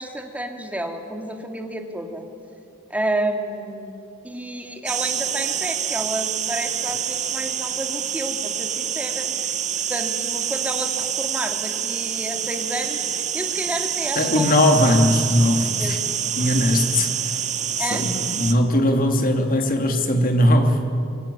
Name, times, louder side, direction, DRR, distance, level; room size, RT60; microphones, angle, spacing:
voice 1, 0.0-2.2 2.9-3.9 4.2-9.3 9.7-14.5 15.8-15.9 17.8-18.0, right 1 dB, 5° right, 3 dB, 2.5 m, -30 dB
sound 1, 4.9-18.5, right 8 dB, 35° right, 1.3 m, -27 dB
voice 2, 14.1-16.0 16.4-17.4 17.8-20.8, left 1 dB, 45° left, 4 dB, 2.8 m, -19 dB
25.0 x 23.0 x 10.0 m, 2.6 s
head